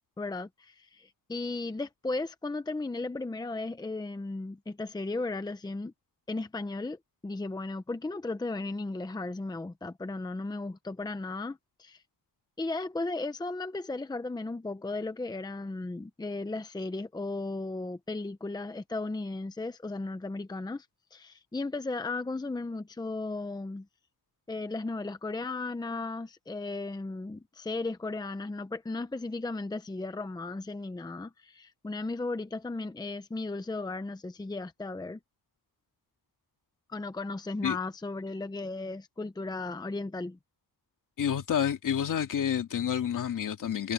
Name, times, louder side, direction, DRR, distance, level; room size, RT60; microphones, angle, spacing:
voice 1, 0.2-5.9 6.3-7.0 7.2-12.0 12.6-20.9 21.1-23.9 24.5-35.2 36.9-40.4, left 2 dB, 10° left, 0.8 m, -35 dB
voice 2, 41.2-43.9, left 9 dB, 55° left, 2.7 m, -29 dB
wide cardioid pair, 145°, 36 cm